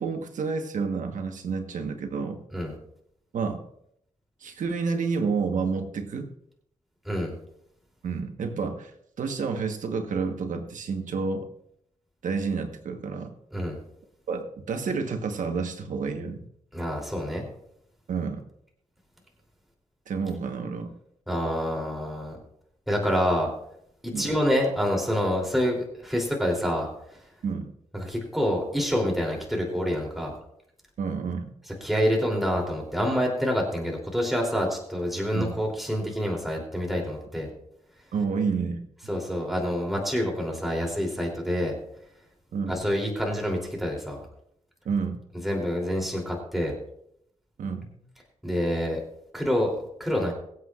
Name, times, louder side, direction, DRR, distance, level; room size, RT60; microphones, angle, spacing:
voice 1, 0.0-2.4 3.3-3.6 4.4-6.3 8.0-8.9 9.2-11.5 12.2-13.3 14.3-16.4 18.1-18.4 20.1-20.9 24.1-24.3 27.4-27.7 31.0-31.5 35.3-35.5 38.1-38.8 42.5-42.8 44.8-45.2 47.6-48.0, right 5 dB, 75° right, 5 dB, 1.2 m, -29 dB
voice 2, 16.7-17.4 21.3-22.3 22.9-23.5 24.0-26.9 27.9-30.3 31.8-37.5 39.1-41.7 42.7-44.2 45.4-46.7 48.4-49.0 49.3-50.3, equal, ahead, 0 dB, 3.1 m, -27 dB
23.0 x 8.0 x 2.4 m, 0.73 s
cardioid pair, 105°, 13 cm